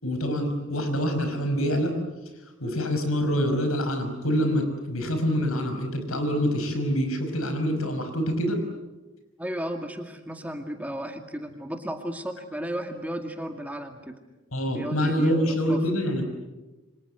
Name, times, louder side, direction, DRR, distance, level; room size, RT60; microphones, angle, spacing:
voice 1, 0.0-2.0 2.6-8.6 14.5-16.3, equal, 85° left, 7 dB, 5.6 m, -26 dB
voice 2, 9.4-14.2 14.7-15.8, equal, 5° right, 5 dB, 2.2 m, -34 dB
28.5 x 25.5 x 8.1 m, 1.1 s
head